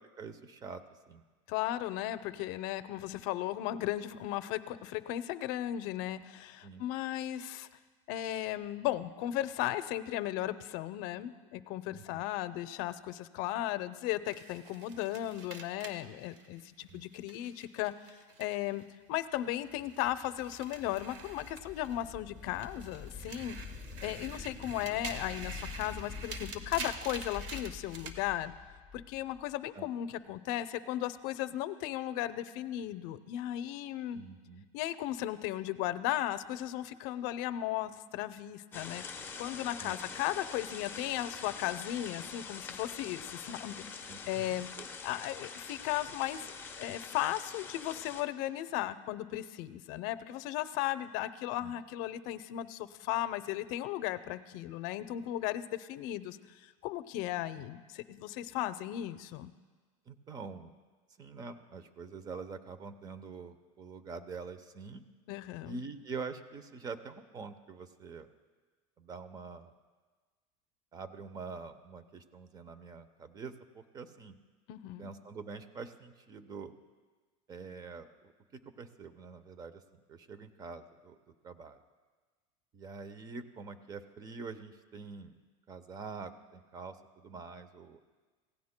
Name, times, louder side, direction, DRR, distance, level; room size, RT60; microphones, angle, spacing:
voice 1, 0.2-1.2 6.6-6.8 11.9-12.2 16.9-17.0 29.7-29.9 34.1-34.6 39.8-40.0 44.1-44.9 51.6-51.7 60.1-60.7 61.2-65.0 65.6-68.3 69.0-69.7 70.9-74.4 75.0-76.7 77.5-81.2 81.4-81.8 82.7-85.4 85.7-88.0, right 4 dB, 20° right, 11 dB, 0.8 m, -45 dB
voice 2, 1.5-7.7 8.1-17.9 18.4-23.6 24.0-28.5 28.9-34.2 34.7-39.0 39.4-44.7 45.0-59.5 65.3-65.8 74.7-75.1, left 13 dB, 55° left, 12 dB, 0.7 m, -36 dB
sound 1, 14.3-18.8 19.1-22.1 22.5-28.2, right 4 dB, 65° right, 1.5 m, -47 dB
sound 2, 19.4-29.5, left 5 dB, 5° right, 1.3 m, -47 dB
sound 3, 38.7-48.2, left 5 dB, 15° left, 0.9 m, -45 dB
26.5 x 17.0 x 2.2 m, 1.4 s
supercardioid pair, 150°, 17 cm